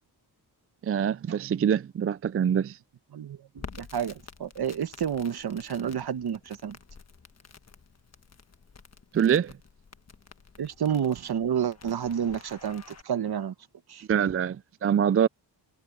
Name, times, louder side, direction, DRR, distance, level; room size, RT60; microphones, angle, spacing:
voice 1, 0.8-2.8 9.1-9.5 14.1-15.3, right 8 dB, 35° right, 0.4 m, -24 dB
voice 2, 3.1-6.8 10.6-13.5 13.9-14.0, right 8 dB, 65° right, 1.2 m, -30 dB
Crackle, 3.6-13.0, left 5 dB, 40° left, 1.4 m, -50 dB
wide cardioid pair, 100°, 41 cm